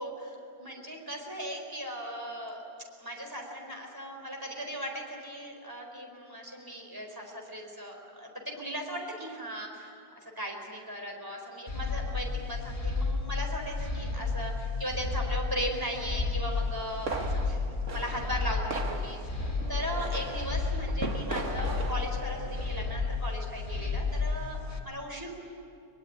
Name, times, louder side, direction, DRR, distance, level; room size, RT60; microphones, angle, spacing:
voice 1, 0.0-2.6 3.0-17.6 17.9-19.2 19.7-25.3, equal, 10° right, 1 dB, 4.4 m, -38 dB
sound 1, 11.7-24.8, left 3 dB, 25° left, 2.2 m, -32 dB
sound 2, 16.6-23.0, right 2 dB, 40° right, 2.1 m, -38 dB
23.5 x 23.0 x 10.0 m, 2.4 s
omnidirectional pair, 2.0 m